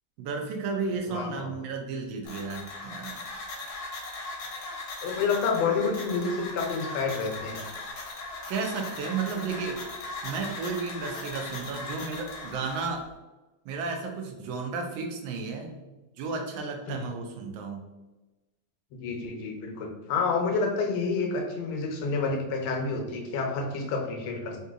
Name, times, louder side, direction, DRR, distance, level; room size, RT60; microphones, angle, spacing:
voice 1, 0.2-3.2 8.5-9.8 10.2-13.1 13.6-15.8 16.2-17.9, right 4 dB, 75° right, 3 dB, 1.3 m, -33 dB
voice 2, 1.1-1.5 5.0-7.6 16.9-17.0 18.9-24.6, left 4 dB, 85° left, 2 dB, 1.5 m, -29 dB
sound 1, 2.3-12.9, left 2 dB, 65° left, 1.1 m, -39 dB
3.7 x 2.7 x 2.3 m, 1.1 s
omnidirectional pair, 2.3 m